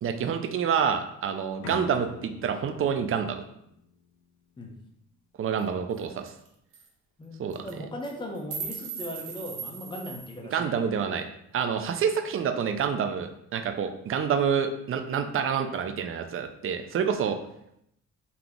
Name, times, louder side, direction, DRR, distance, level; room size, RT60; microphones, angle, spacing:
voice 1, 0.0-3.4 5.4-6.3 7.4-7.6 10.5-11.3 11.5-17.4, right 7 dB, 45° right, 7 dB, 0.5 m, -28 dB
sound 1, 1.6-4.5, left 6 dB, 70° left, 0.6 m, -44 dB
sound 2, 5.6-5.7 6.0-6.1 6.3-6.5 6.7-6.9 7.5-7.7 8.0-10.4, right 6 dB, 75° right, 1.0 m, -38 dB
voice 2, 7.2-10.7, left 1 dB, 15° left, 1 dB, 0.8 m, -38 dB
3.9 x 2.9 x 3.6 m, 0.76 s
cardioid pair, 90°, 30 cm